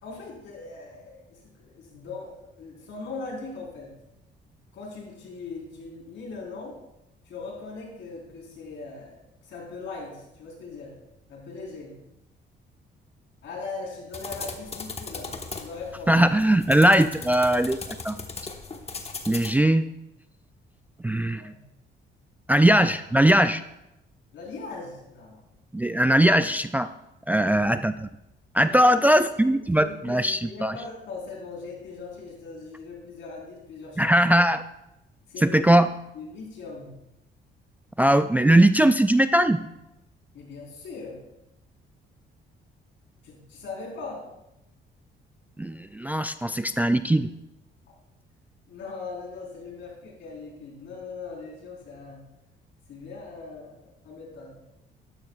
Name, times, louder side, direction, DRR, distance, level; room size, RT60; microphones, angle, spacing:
voice 1, 0.0-3.9 4.7-6.7 7.3-9.1 9.4-10.9 11.3-11.9 13.4-15.3 15.6-16.2 21.3-21.5 24.3-25.4 27.3-27.7 28.6-29.0 29.5-34.2 35.3-35.6 36.1-36.9 40.3-41.2 43.2-44.2 48.7-52.2 52.9-54.6, left 4 dB, 70° left, -2 dB, 4.2 m, -40 dB
sound 1, 14.1-19.5, left 4 dB, 30° left, 1.2 m, -38 dB
voice 2, 16.1-18.2 19.3-19.9 21.0-21.5 22.5-23.6 25.7-26.9 27.3-28.1 28.5-30.7 34.0-34.6 35.4-35.9 38.0-39.6 45.6-47.3, right 1 dB, 10° right, 11 dB, 0.3 m, -20 dB
12.0 x 12.0 x 2.4 m, 0.88 s
cardioid pair, 90°, 20 cm